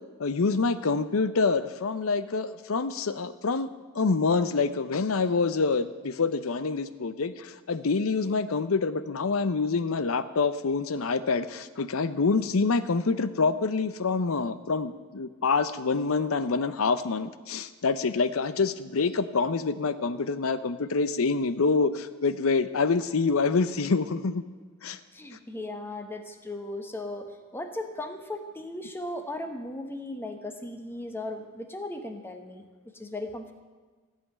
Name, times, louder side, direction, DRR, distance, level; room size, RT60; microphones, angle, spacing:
voice 1, 0.2-3.7 3.9-24.4 24.8-25.0, left 4 dB, 80° left, 13 dB, 0.7 m, -26 dB
voice 2, 25.1-32.7 32.9-33.5, left 1 dB, 10° left, 6 dB, 0.9 m, -37 dB
15.5 x 5.7 x 9.5 m, 1.4 s
head